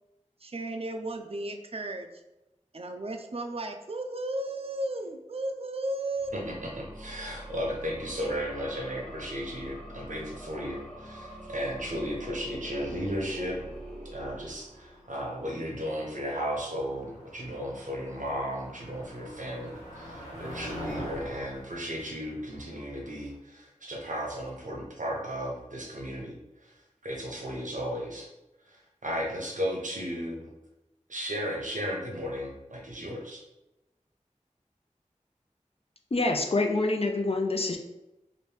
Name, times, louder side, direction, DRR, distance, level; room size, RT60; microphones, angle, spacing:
voice 1, 0.4-2.2 2.7-6.5, right 1 dB, 50° right, 5 dB, 0.4 m, -34 dB
sound 1, 6.1-15.2, equal, ahead, 0.8 m, -45 dB
voice 2, 6.3-13.6 14.1-26.4 26.6-26.7 27.0-28.3 28.7-30.5 31.1-33.4, equal, 90° right, -1 dB, 0.7 m, -35 dB
Motor vehicle (road), 13.0-23.3, equal, 80° left, 1.3 m, -46 dB
voice 3, 36.1-37.8, left 2 dB, 50° left, 3 dB, 0.4 m, -26 dB
3.0 x 2.6 x 3.3 m, 0.97 s
wide cardioid pair, 50°, 13 cm